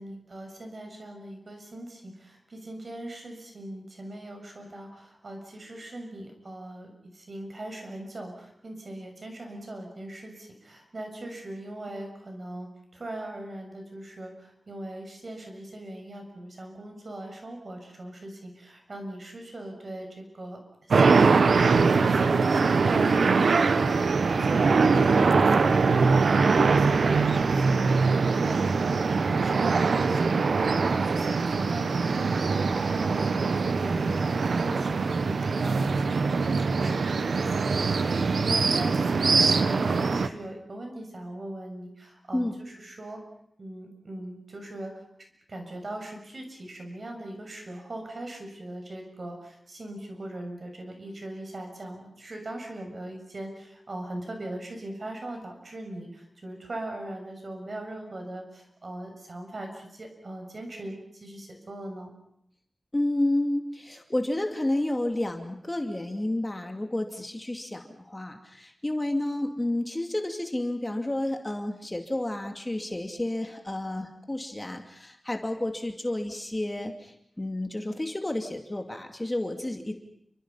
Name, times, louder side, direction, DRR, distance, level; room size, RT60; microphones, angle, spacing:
voice 1, 0.0-20.6 20.9-30.4 30.7-37.6 37.9-43.2 43.6-45.0 45.5-62.1, right 1 dB, 55° right, 3 dB, 6.9 m, -40 dB
sound 1, 20.9-40.3, right 4 dB, 90° right, 1.2 m, -23 dB
voice 2, 62.9-79.9, left 1 dB, 20° left, 4 dB, 2.6 m, -30 dB
29.5 x 24.5 x 5.7 m, 0.72 s
wide cardioid pair, 85°, 0 cm